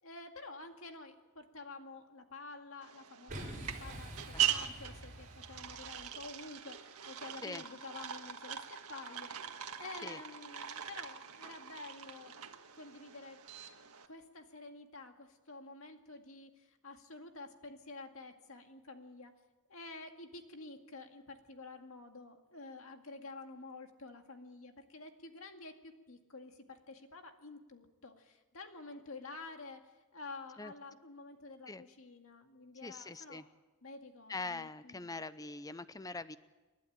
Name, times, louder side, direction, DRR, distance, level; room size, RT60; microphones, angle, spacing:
voice 1, 0.0-12.4 12.7-13.4 14.1-19.3 19.7-33.5 33.8-35.2, left 3 dB, 65° left, 5 dB, 2.1 m, -50 dB
sound 1, 2.8-14.1, right 10 dB, 90° right, 1.6 m, -41 dB
Boom, 3.3-6.3, right 1 dB, 40° right, 5.3 m, -47 dB
voice 2, 4.3-4.6 7.4-7.6 10.0-10.2 30.6-30.7 31.7-31.8 32.8-33.4 34.3-36.4, left 3 dB, 15° left, 14 dB, 0.6 m, -43 dB
29.0 x 11.5 x 9.1 m, 1.2 s
head